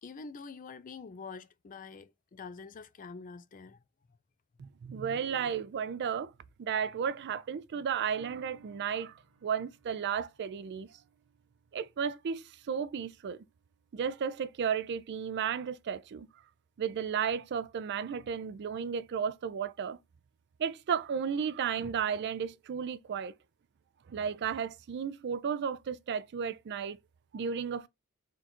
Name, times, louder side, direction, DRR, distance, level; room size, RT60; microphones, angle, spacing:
voice 1, 0.0-3.8, left 4 dB, 40° left, 0.4 m, -46 dB
voice 2, 4.6-6.3 6.6-9.1 9.4-10.9 11.7-13.4 13.9-16.3 16.8-20.0 20.6-23.3 24.1-27.0 27.3-27.9, right 7 dB, 55° right, 0.4 m, -33 dB
sound 1, 8.1-14.8 15.3-15.4, right 7 dB, 75° right, 0.8 m, -62 dB
3.8 x 2.4 x 4.2 m
head